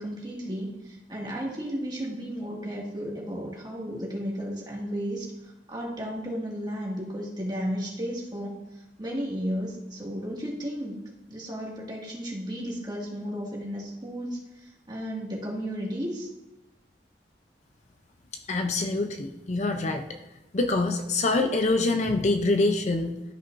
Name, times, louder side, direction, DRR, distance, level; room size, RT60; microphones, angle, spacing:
voice 1, 0.0-11.0 11.3-16.3, equal, 25° right, -4 dB, 2.0 m, -34 dB
voice 2, 18.5-20.0 20.5-23.2, left 2 dB, 40° left, 6 dB, 0.6 m, -25 dB
13.0 x 5.6 x 2.6 m, 0.95 s
head